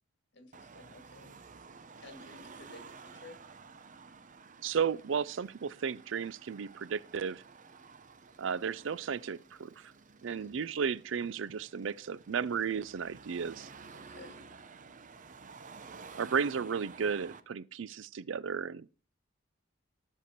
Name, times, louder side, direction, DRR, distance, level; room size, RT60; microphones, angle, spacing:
voice 1, 0.3-1.4 2.0-3.4 10.3-10.5 13.9-14.5, left 2 dB, 60° left, 2.3 m, -53 dB
Car passing by / Traffic noise roadway noise / Engine, 0.5-17.4, right 5 dB, 40° right, 0.8 m, -52 dB
voice 2, 4.6-7.4 8.4-9.9 10.2-13.7 16.1-18.9, right 6 dB, 70° right, 0.5 m, -34 dB
13.5 x 6.8 x 4.4 m
head